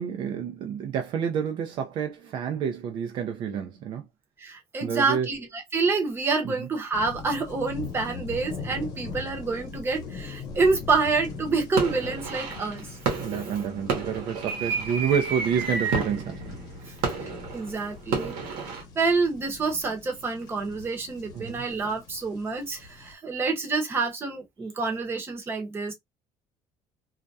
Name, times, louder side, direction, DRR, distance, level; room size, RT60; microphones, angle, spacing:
voice 1, 0.0-4.0 4.8-5.3 6.4-6.7 13.2-16.5 21.3-21.6, right 7 dB, 55° right, 0.5 m, -29 dB
voice 2, 4.4-12.9 17.5-18.3 18.7-25.9, right 4 dB, 25° right, 0.8 m, -27 dB
sound 1, 6.9-23.1, left 4 dB, 40° left, 0.9 m, -41 dB
sound 2, 11.0-11.3 11.8-18.8, right 4 dB, 80° right, 0.9 m, -31 dB
2.4 x 2.1 x 2.6 m
cardioid pair, 140°, 10 cm